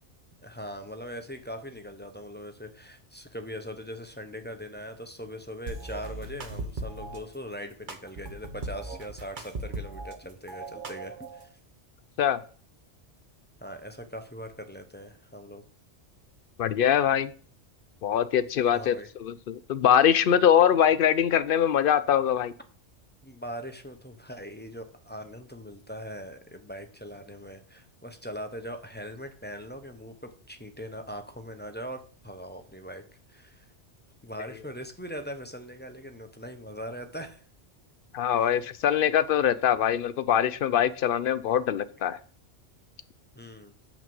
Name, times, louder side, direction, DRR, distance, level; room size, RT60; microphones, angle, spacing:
voice 1, 0.4-11.5 13.6-15.6 18.6-19.1 23.2-33.0 33.3-33.7 34.2-37.4 38.4-38.7 43.4-43.7, equal, 10° left, 6 dB, 0.7 m, -41 dB
sound 1, 5.7-7.2 7.9-10.2 10.5-11.5, right 2 dB, 45° right, 1.1 m, -38 dB
voice 2, 16.6-17.3 18.0-18.9 19.2-22.5 38.1-42.2, left 9 dB, 60° left, 14 dB, 0.6 m, -23 dB
7.3 x 6.0 x 5.4 m, 0.43 s
omnidirectional pair, 1.2 m